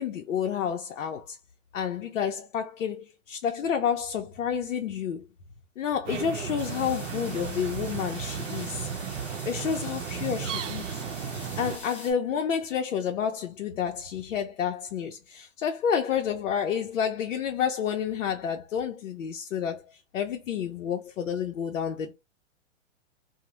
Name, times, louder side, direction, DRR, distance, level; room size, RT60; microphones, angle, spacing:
voice 1, 0.0-1.4 1.7-5.3 5.8-8.9 9.4-10.8 11.6-22.1, left 8 dB, 90° left, 0.6 m, -30 dB
sound 1, 6.1-11.8, right 8 dB, 70° right, 0.6 m, -34 dB
sound 2, 6.6-12.1, left 1 dB, 5° left, 0.3 m, -44 dB
2.7 x 2.0 x 3.0 m
hypercardioid pair, 130°, 38 cm